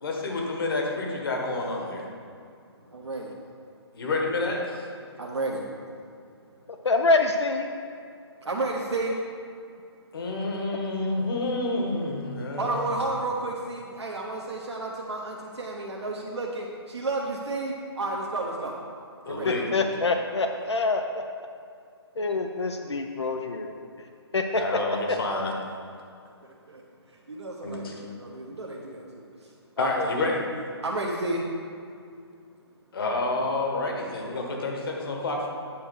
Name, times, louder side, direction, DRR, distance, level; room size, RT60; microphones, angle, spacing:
voice 1, 0.0-2.0 3.9-4.8 10.1-12.9 19.2-19.7 24.6-25.5 27.6-27.9 29.8-30.4 32.9-35.5, left 2 dB, 55° left, 0 dB, 1.6 m, -29 dB
voice 2, 2.9-3.3 5.2-5.7 8.4-9.2 12.6-18.8 19.2-19.5 26.4-26.8 27.3-29.2 29.8-30.0 30.8-31.5, right 2 dB, 75° right, -2 dB, 1.0 m, -31 dB
voice 3, 6.8-7.7 19.4-21.2 22.2-23.9 24.3-24.6 30.0-30.1, left 3 dB, 80° left, 5 dB, 0.6 m, -25 dB
8.5 x 4.4 x 6.4 m, 2.3 s
figure-of-eight pair, 135°, 14 cm